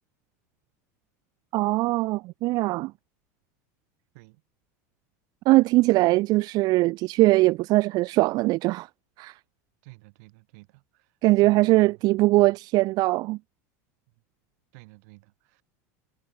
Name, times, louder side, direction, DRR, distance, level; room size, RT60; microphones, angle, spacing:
voice 1, 1.5-2.9 5.5-8.9 9.2-9.4 11.2-13.4, right 20 dB, 50° right, 0.4 m, -21 dB
voice 2, 9.8-12.5 14.1-14.2 14.7-15.6, right 28 dB, 70° right, 7.0 m, -53 dB
supercardioid pair, 115°, 9 cm